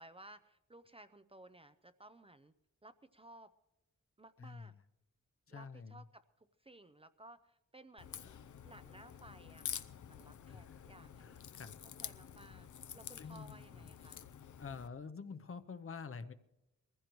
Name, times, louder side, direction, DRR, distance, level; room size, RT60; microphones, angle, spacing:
voice 1, 0.0-2.5 2.8-3.5 4.2-4.7 5.5-8.4 8.6-11.5 11.8-12.7 12.9-14.2, right 1 dB, 20° right, 12 dB, 0.5 m, -58 dB
voice 2, 4.4-4.8 5.5-6.0 10.5-10.8 11.2-12.1 13.2-13.8 14.6-16.3, left 5 dB, 50° left, 10 dB, 0.7 m, -48 dB
Crack, 8.0-14.9, left 9 dB, 90° left, 0.7 m, -48 dB
22.0 x 15.5 x 3.1 m, 0.97 s
wide cardioid pair, 150°, 29 cm